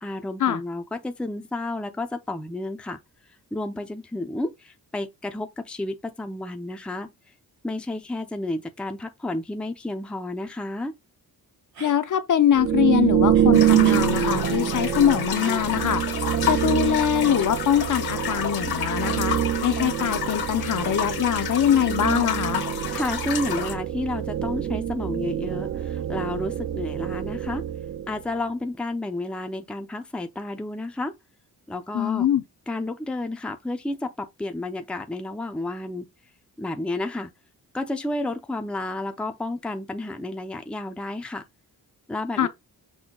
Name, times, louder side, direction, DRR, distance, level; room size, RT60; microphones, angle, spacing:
voice 1, 0.0-3.0 3.5-7.1 7.6-11.0 22.9-27.6 28.1-31.1 31.7-32.3 32.7-36.1 36.6-37.3 37.7-41.4 42.1-42.5, left 2 dB, 5° left, 0.5 m, -31 dB
sound 1, 11.7-12.0 13.3-13.5 13.8-14.1 15.4-16.0, right 5 dB, 75° right, 2.0 m, -37 dB
voice 2, 11.8-16.0 16.4-22.6 31.9-32.4 42.4-42.5, left 10 dB, 55° left, 0.6 m, -23 dB
sound 2, 12.5-28.3, right 10 dB, 45° right, 0.6 m, -25 dB
sound 3, 13.5-23.7, left 8 dB, 85° left, 1.5 m, -31 dB
6.2 x 2.2 x 3.8 m
wide cardioid pair, 115°, 37 cm